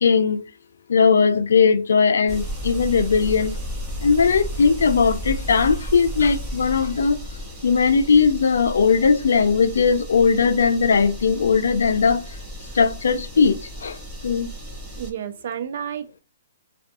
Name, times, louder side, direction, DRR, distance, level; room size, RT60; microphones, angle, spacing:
voice 1, 0.0-0.4 0.9-3.5 4.0-7.2 7.6-12.3 12.7-14.0 14.2-14.5, left 5 dB, 80° left, 0.3 m, -18 dB
sound 1, 2.3-15.1, right 1 dB, 15° right, 0.7 m, -34 dB
voice 2, 15.0-16.2, right 9 dB, 60° right, 0.4 m, -31 dB
2.3 x 2.3 x 2.5 m
hypercardioid pair, 150°, 0 cm